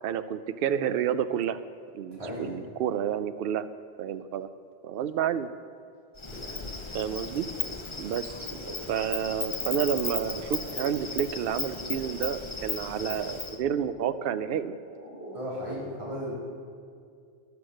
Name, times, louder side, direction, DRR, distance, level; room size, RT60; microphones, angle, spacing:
voice 1, 0.0-1.6 1.9-3.7 4.0-4.5 4.8-5.5 6.9-7.5 8.0-14.8, right 9 dB, 70° right, 12 dB, 0.7 m, -30 dB
voice 2, 2.2-2.6 15.3-16.3, equal, 30° right, -7 dB, 3.0 m, -35 dB
Insect, 6.2-13.6, left 4 dB, 30° left, 0.8 m, -36 dB
sound 1, 6.3-15.7, equal, 85° right, 4.3 m, -46 dB
13.0 x 9.6 x 6.4 m, 2.3 s
omnidirectional pair, 1.1 m